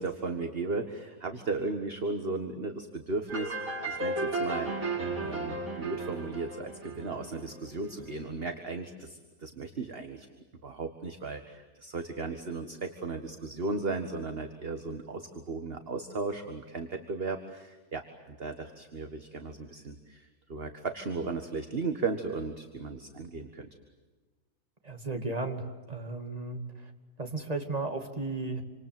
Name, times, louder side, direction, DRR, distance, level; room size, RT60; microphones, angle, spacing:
voice 1, 0.0-3.5 3.9-4.7 5.2-10.3 10.6-23.7, right 3 dB, 40° right, 6 dB, 1.9 m, -36 dB
sound 1, 3.3-7.9, right 2 dB, 60° right, 6.9 m, -34 dB
voice 2, 24.8-26.6 27.2-28.6, right 3 dB, 25° right, 4 dB, 2.7 m, -34 dB
27.5 x 26.5 x 7.8 m, 1.3 s
omnidirectional pair, 1.6 m